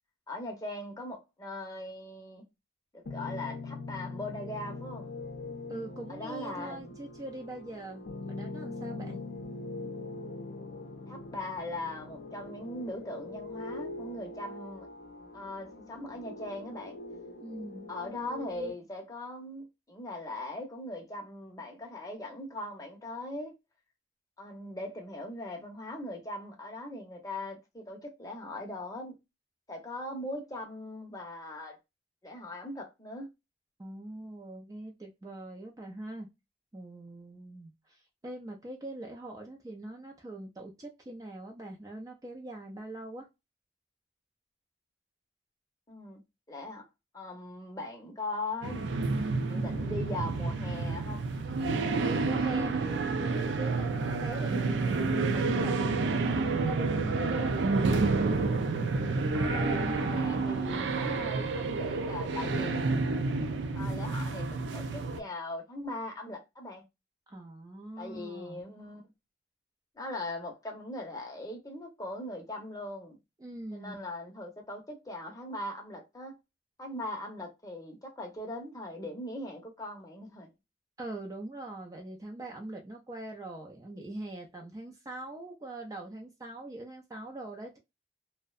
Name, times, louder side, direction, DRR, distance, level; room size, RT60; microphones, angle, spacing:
voice 1, 0.3-2.4 2.9-5.1 6.1-6.9 8.9-9.2 11.1-14.9 15.3-17.0 17.9-23.5 24.4-29.1 29.7-31.8 32.2-33.3 45.9-46.2 46.5-46.8 47.1-48.8 49.5-51.2 59.3-63.0 63.7-66.8 68.0-69.0 70.0-73.2 73.7-76.3 76.8-80.5, left 1 dB, 20° left, 0.7 m, -40 dB
sound 1, 3.1-18.7, left 3 dB, 70° left, 0.5 m, -42 dB
voice 2, 5.7-9.2 17.4-17.9 33.8-36.3 36.7-43.3 52.0-58.2 67.3-68.6 73.4-73.9 81.0-87.8, right 1 dB, 20° right, 0.4 m, -42 dB
sound 2, 48.6-65.2, right 3 dB, 85° right, 0.4 m, -29 dB
2.6 x 2.1 x 2.3 m
head